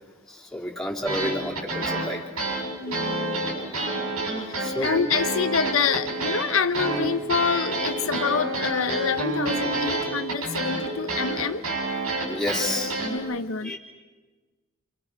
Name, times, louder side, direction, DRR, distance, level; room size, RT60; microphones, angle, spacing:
voice 1, 0.3-2.2 4.6-4.9 12.3-12.9 13.6-13.8, left 1 dB, ahead, -2 dB, 3.6 m, -30 dB
sound 1, 1.0-13.2, right 2 dB, 85° right, 7.4 m, -28 dB
voice 2, 2.8-3.4 4.8-11.6 13.1-13.8, left 6 dB, 65° left, 9 dB, 0.8 m, -26 dB
Telephone, 2.9-3.4 3.9-4.4 4.9-5.4 5.9-6.4 6.9-7.4 7.9-8.4 8.9-9.4 9.9-10.4 10.9-11.4, right 2 dB, 20° right, 2.6 m, -36 dB
30.0 x 27.5 x 5.9 m, 1.3 s
head